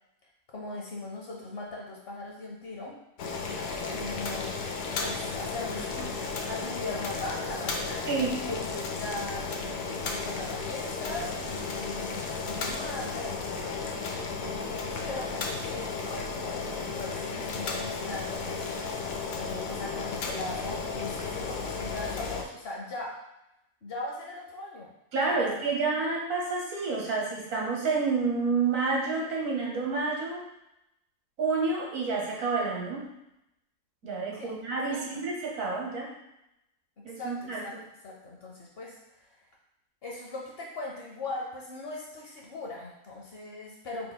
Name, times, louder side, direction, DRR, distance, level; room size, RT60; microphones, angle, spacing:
voice 1, 0.5-3.0 3.9-4.5 5.0-8.1 8.4-13.4 14.4-19.1 19.3-23.2 23.8-24.9 25.3-25.7 34.3-34.6 34.9-35.2 37.2-37.7 38.0-39.4 40.0-44.1, left 2 dB, 55° left, -2 dB, 0.8 m, -40 dB
Boiling, 3.2-22.4, left 4 dB, 85° left, 1.0 m, -34 dB
voice 2, 8.1-8.4 25.1-30.4 31.4-33.1 34.0-36.1 37.0-37.6, right 4 dB, 75° right, -2 dB, 1.3 m, -29 dB
4.0 x 3.8 x 2.2 m, 0.85 s
omnidirectional pair, 1.4 m